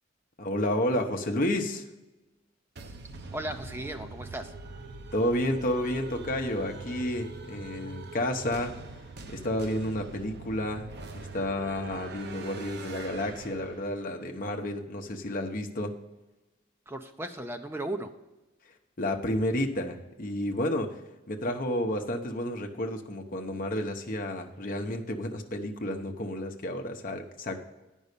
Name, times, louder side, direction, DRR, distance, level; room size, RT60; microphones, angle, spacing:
voice 1, 0.4-1.8 5.1-8.8 9.3-16.0 19.0-21.0 21.3-27.6, left 1 dB, 45° left, 4 dB, 0.9 m, -31 dB
sound 1, 2.8-14.2, right 3 dB, 55° right, 0.7 m, -43 dB
voice 2, 3.3-4.5 16.9-18.1, right 1 dB, 10° right, 6 dB, 0.6 m, -36 dB
9.4 x 5.5 x 6.7 m, 1.0 s
head